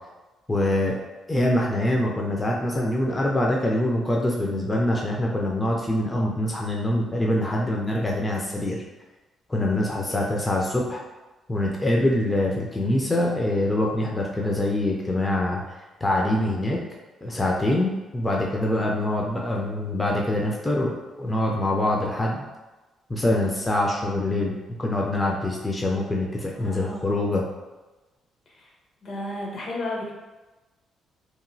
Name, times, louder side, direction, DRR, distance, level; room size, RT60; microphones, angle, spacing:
voice 1, 0.5-1.0 1.3-8.8 9.5-11.0 11.5-15.6 16.0-16.8 17.2-22.4 23.1-27.4, left 1 dB, 20° left, -2 dB, 0.4 m, -24 dB
voice 2, 26.5-27.0 28.5-28.7 29.0-30.1, left 1 dB, 60° left, -1 dB, 0.7 m, -33 dB
2.9 x 2.6 x 2.6 m, 1.2 s
cardioid pair, 90°, 0 cm